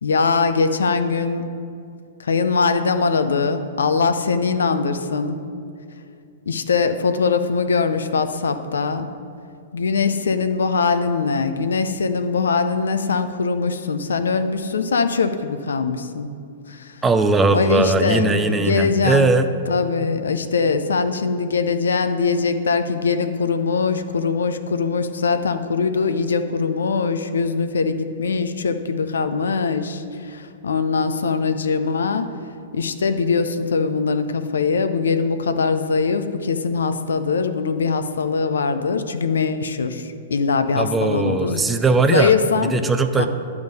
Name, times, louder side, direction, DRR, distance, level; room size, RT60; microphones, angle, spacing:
voice 1, 0.0-1.4 2.2-5.4 6.5-9.1 9.7-16.3 16.7-17.0 17.5-19.3 19.7-32.3 32.7-41.6 42.1-42.8 43.2-43.3, left 5 dB, 75° left, 9 dB, 0.5 m, -22 dB
voice 2, 17.0-19.5 40.8-43.3, right 3 dB, 15° right, 8 dB, 0.5 m, -19 dB
10.5 x 3.6 x 6.5 m, 2.4 s
figure-of-eight pair, 110°, 0 cm